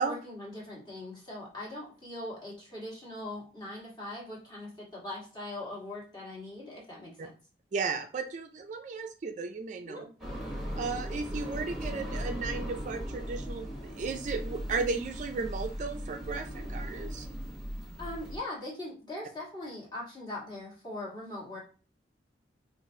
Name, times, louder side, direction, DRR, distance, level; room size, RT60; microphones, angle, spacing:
voice 1, 0.0-7.3 9.8-10.1 18.0-21.6, left 1 dB, 25° left, -4 dB, 1.4 m, -41 dB
voice 2, 7.7-10.0 10.8-17.3, right 4 dB, 40° right, 6 dB, 0.3 m, -35 dB
sound 1, 10.2-18.4, equal, ahead, 1.1 m, -38 dB
4.9 x 2.4 x 2.6 m, 0.36 s
head